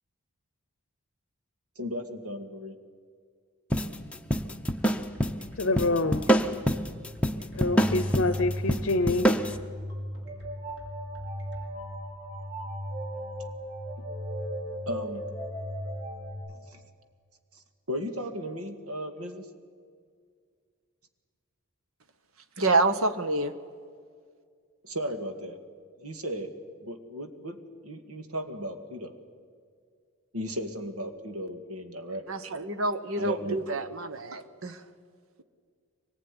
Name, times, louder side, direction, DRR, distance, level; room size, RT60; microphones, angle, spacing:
voice 1, 1.8-2.8 14.9-15.3 16.7-16.8 17.9-19.5 24.8-25.6 26.0-26.5 26.8-29.2 30.3-32.3 33.2-33.6, equal, 85° right, 7 dB, 2.1 m, -35 dB
sound 1, 3.7-9.6, right 1 dB, 5° left, 0.8 m, -26 dB
sound 2, 4.5-11.7, left 1 dB, 50° right, 5.6 m, -51 dB
voice 2, 5.6-6.3 7.6-9.3, left 2 dB, 55° left, 13 dB, 0.7 m, -26 dB
sound 3, 7.6-16.3, equal, 35° right, 6.2 m, -36 dB
voice 3, 22.6-23.5 32.3-34.8, right 2 dB, 70° right, 11 dB, 1.2 m, -27 dB
24.0 x 19.0 x 9.8 m, 2.1 s
head